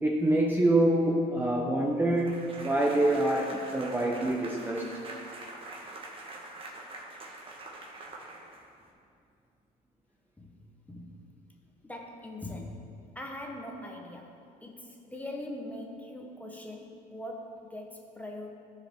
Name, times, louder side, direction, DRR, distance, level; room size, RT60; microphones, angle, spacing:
voice 1, 0.0-4.9, right 1 dB, 10° right, -2 dB, 0.8 m, -26 dB
sound 1, 2.1-8.9, right 2 dB, 30° right, 1.3 m, -44 dB
voice 2, 10.9-11.2 11.8-12.9 13.1-18.5, left 1 dB, 10° left, 1 dB, 1.0 m, -42 dB
14.5 x 4.8 x 3.6 m, 2.4 s
cardioid pair, 110°, 17 cm